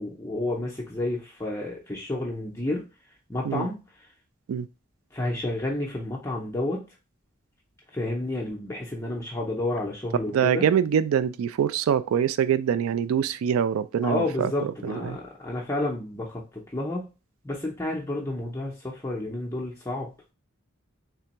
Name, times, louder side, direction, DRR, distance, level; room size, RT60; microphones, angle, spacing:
voice 1, 0.0-2.8 3.3-3.8 5.1-6.9 7.9-10.7 14.0-17.1 17.4-20.1, left 2 dB, 15° left, 0.5 m, -30 dB
voice 2, 10.3-15.2, right 8 dB, 85° right, 0.3 m, -24 dB
3.4 x 3.3 x 2.9 m
head